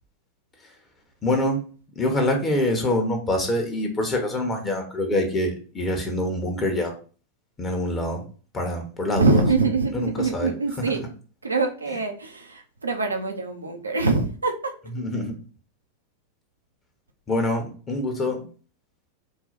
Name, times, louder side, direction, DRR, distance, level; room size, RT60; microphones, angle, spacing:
voice 1, 1.2-1.6 2.0-6.9 7.6-8.2 8.5-9.4 9.9-10.5 10.8-10.9 14.9-15.3 17.3-18.4, left 1 dB, 20° left, 3 dB, 1.2 m, -25 dB
voice 2, 9.1-11.0 11.4-14.7, right 3 dB, 80° right, 3 dB, 0.7 m, -24 dB
4.7 x 2.3 x 4.2 m, 0.38 s
figure-of-eight pair, 90°, 0 cm